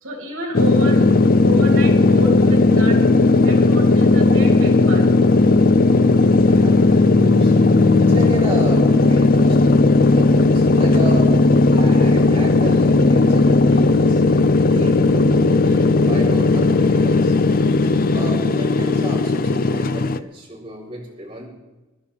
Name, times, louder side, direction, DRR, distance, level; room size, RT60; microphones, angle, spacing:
voice 1, 0.0-3.0 3.4-5.1, right 1 dB, 90° right, 0 dB, 3.4 m, -29 dB
sound 1, 0.5-20.2, left 3 dB, 45° left, 0.6 m, -15 dB
voice 2, 6.4-7.5 8.0-11.3 11.7-14.2 14.7-17.3 18.1-21.5, right 1 dB, 30° right, -5 dB, 4.0 m, -33 dB
24.5 x 11.5 x 3.5 m, 1.1 s
head